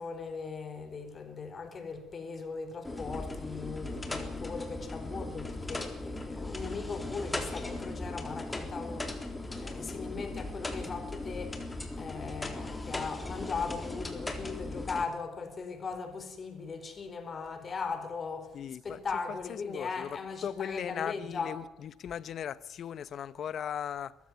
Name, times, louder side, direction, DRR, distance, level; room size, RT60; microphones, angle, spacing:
voice 1, 0.0-9.1 9.6-11.6 12.0-18.5 18.8-21.6, left 5 dB, 40° left, 4.3 m, -38 dB
sound 1, 2.8-15.0, left 2 dB, 15° left, 3.8 m, -38 dB
voice 2, 18.5-24.1, left 9 dB, 60° left, 0.9 m, -38 dB
22.0 x 15.0 x 9.5 m
supercardioid pair, 75°, 0 cm